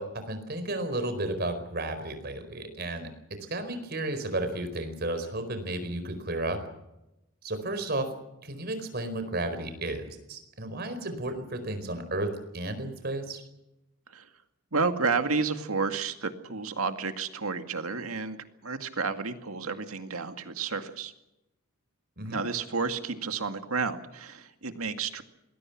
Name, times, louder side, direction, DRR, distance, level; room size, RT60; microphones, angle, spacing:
voice 1, 0.0-3.1 3.5-6.6 7.4-8.1 8.4-12.3 12.5-13.4 22.2-22.4, right 2 dB, 45° right, 9 dB, 4.6 m, -33 dB
voice 2, 14.7-18.4 18.6-21.1 22.3-25.2, right 4 dB, 85° right, 7 dB, 2.1 m, -31 dB
27.0 x 21.0 x 6.0 m, 0.92 s
head